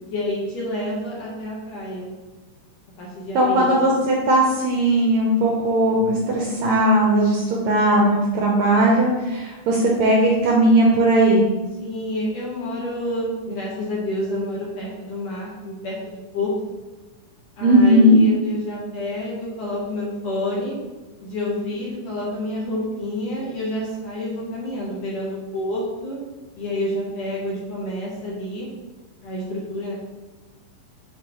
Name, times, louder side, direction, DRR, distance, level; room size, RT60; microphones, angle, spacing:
voice 1, 0.1-2.1 3.0-3.8 11.8-16.5 17.6-20.8 21.2-26.2 26.6-28.7 29.2-29.9, left 1 dB, 60° left, -5 dB, 1.9 m, -28 dB
voice 2, 3.3-11.4 17.6-18.2, right 1 dB, 75° right, -2 dB, 1.7 m, -17 dB
7.0 x 4.6 x 3.0 m, 1.2 s
omnidirectional pair, 3.9 m